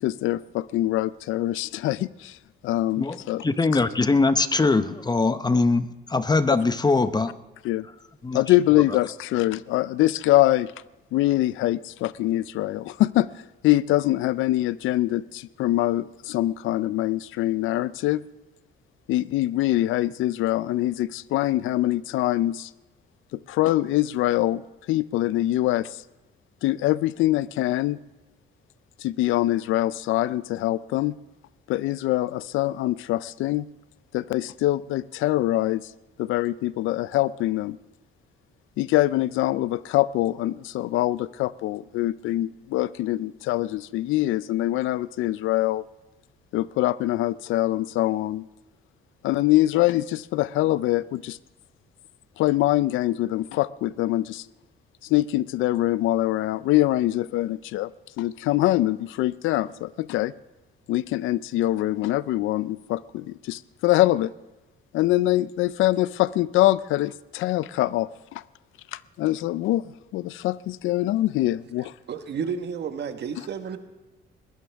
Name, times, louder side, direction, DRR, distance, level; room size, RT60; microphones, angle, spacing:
voice 1, 0.0-2.4 2.6-3.5 6.5-6.6 7.6-7.9 8.3-10.7 11.1-13.3 13.6-18.2 19.1-22.7 23.3-24.6 24.9-25.9 26.6-28.0 29.0-31.1 31.7-33.7 34.1-35.8 36.2-37.8 38.8-45.8 46.5-48.4 49.2-51.4 52.4-54.4 55.1-57.9 58.2-60.3 60.9-64.3 64.9-68.4 68.9-69.8 70.1-71.9, left 15 dB, 85° left, 0.4 m, -24 dB
voice 2, 3.0-7.3 8.2-8.4 8.7-8.8, left 3 dB, 20° left, 0.7 m, -22 dB
voice 3, 72.1-73.8, right 6 dB, 60° right, 1.4 m, -31 dB
20.5 x 15.5 x 3.5 m
cardioid pair, 90°, 20 cm